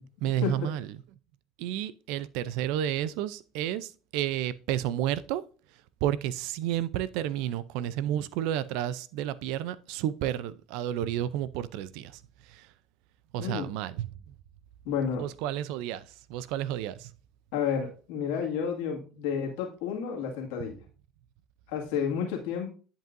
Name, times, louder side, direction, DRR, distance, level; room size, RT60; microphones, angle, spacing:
voice 1, 0.2-0.9 1.6-5.4 6.0-12.2 12.5-12.7 13.3-14.1 15.1-17.1, right 11 dB, 75° right, 0.5 m, -31 dB
voice 2, 14.8-15.2 17.5-20.8 21.7-22.7, left 7 dB, 80° left, 2.0 m, -31 dB
10.0 x 5.5 x 2.6 m
supercardioid pair, 95°, 0 cm